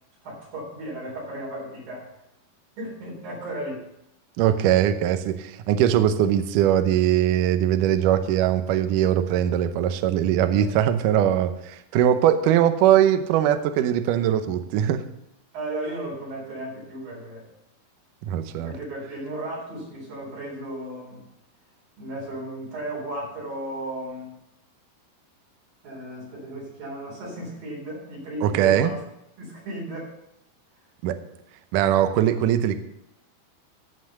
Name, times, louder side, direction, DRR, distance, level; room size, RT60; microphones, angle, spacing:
voice 1, 0.2-2.1 2.8-3.9 10.5-10.9 12.0-12.2 15.5-17.5 18.5-21.3 22.0-24.3 25.8-28.9 29.4-30.1, right 1 dB, 55° right, -5 dB, 5.8 m, -35 dB
voice 2, 4.4-15.0 18.2-18.7 28.4-28.9 31.0-31.2 31.7-32.8, right 10 dB, 80° right, 9 dB, 1.9 m, -21 dB
15.5 x 5.7 x 6.5 m, 0.83 s
omnidirectional pair, 4.8 m